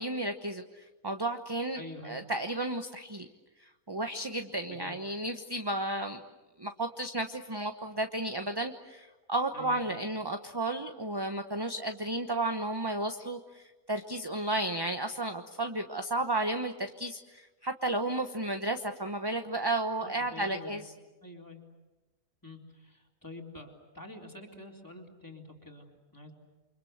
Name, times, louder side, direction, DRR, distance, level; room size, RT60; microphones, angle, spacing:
voice 1, 0.0-3.3 3.9-6.2 6.6-20.8, right 2 dB, 20° right, 6 dB, 1.0 m, -33 dB
voice 2, 1.7-2.2 4.7-5.0 9.5-10.0 20.0-20.9 21.2-21.6 22.4-26.3, left 2 dB, 15° left, 1 dB, 3.8 m, -47 dB
29.5 x 25.0 x 8.0 m, 1.1 s
omnidirectional pair, 1.5 m